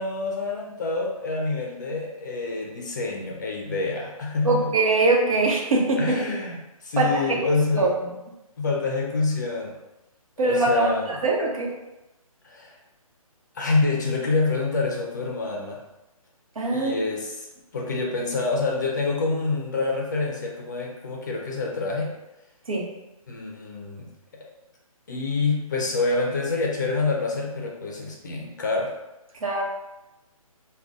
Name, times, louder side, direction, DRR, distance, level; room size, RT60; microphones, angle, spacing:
voice 1, 0.0-4.7 6.0-6.6 6.8-7.9 8.6-9.7 10.4-11.1 12.4-12.8 13.5-15.8 16.7-17.5 17.7-22.1 23.3-24.1 25.1-28.9, left 3 dB, 30° left, -1 dB, 0.5 m, -27 dB
voice 2, 4.4-6.2 7.0-7.4 7.8-8.1 10.4-11.7 16.6-17.0 22.7-22.9 29.4-29.6, right 3 dB, 70° right, -1 dB, 1.0 m, -22 dB
4.9 x 2.3 x 2.5 m, 0.98 s
hypercardioid pair, 170°, 19 cm